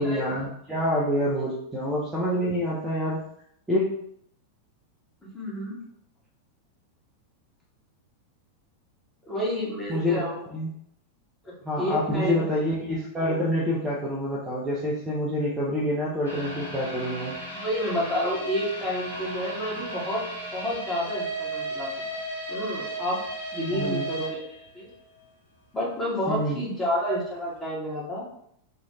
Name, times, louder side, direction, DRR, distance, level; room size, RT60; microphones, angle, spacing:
voice 1, 0.0-3.2 3.7-3.9 9.9-10.2 10.5-10.7 11.6-17.4 23.7-24.0 26.3-26.6, left 1 dB, 10° right, -6 dB, 0.7 m, -27 dB
voice 2, 5.3-5.8 9.2-10.4 11.4-12.7 17.5-20.2 20.5-21.9 22.5-23.2 23.5-24.9 25.7-28.2, equal, 10° left, -7 dB, 1.4 m, -30 dB
sound 1, 16.2-25.2 25.6-25.7 26.2-26.3, right 2 dB, 75° left, 0.9 m, -35 dB
3.0 x 2.5 x 3.0 m, 0.70 s
figure-of-eight pair, 90°, 0 cm